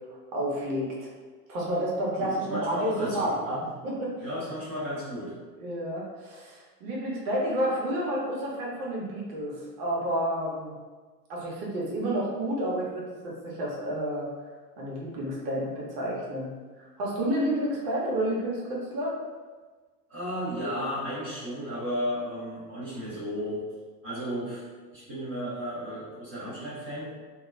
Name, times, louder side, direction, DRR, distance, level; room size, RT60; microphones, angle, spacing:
voice 1, 0.3-1.1 1.5-4.1 5.6-10.7 11.3-14.3 14.8-16.5 16.8-19.2, right 1 dB, 35° right, -4 dB, 0.7 m, -30 dB
voice 2, 2.2-3.6 4.2-5.3 20.1-23.6 24.0-24.6 24.9-27.1, equal, 15° right, -15 dB, 0.3 m, -34 dB
2.2 x 2.1 x 3.0 m, 1.4 s
figure-of-eight pair, 95°, 48 cm